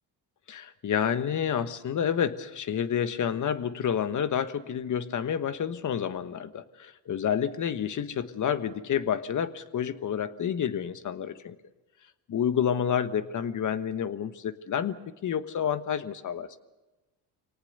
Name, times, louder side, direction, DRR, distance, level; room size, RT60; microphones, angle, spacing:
voice 1, 0.5-11.6 12.3-15.0 15.2-16.6, left 8 dB, 50° left, 11 dB, 1.4 m, -29 dB
25.0 x 18.5 x 6.8 m, 1.1 s
cardioid pair, 95°, 40 cm